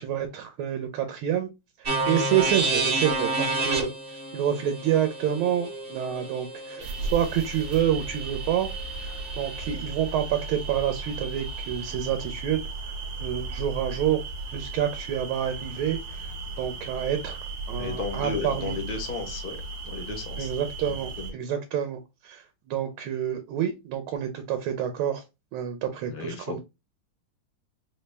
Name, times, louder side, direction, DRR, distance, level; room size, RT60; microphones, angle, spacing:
voice 1, 0.0-1.5 1.8-3.9 4.3-8.7 9.0-12.6 13.2-14.2 14.5-16.3 16.6-17.4 17.7-18.8 20.4-25.2 25.5-26.6, right 10 dB, 80° right, 1.4 m, -28 dB
sound 1, 1.9-9.7, right 2 dB, 45° right, 0.7 m, -31 dB
sound 2, 6.8-21.3, right 3 dB, 65° right, 1.1 m, -36 dB
voice 2, 17.8-19.6 19.8-20.5 20.8-21.3 26.1-26.6, left 4 dB, 80° left, 0.4 m, -34 dB
4.2 x 2.1 x 3.3 m
omnidirectional pair, 2.3 m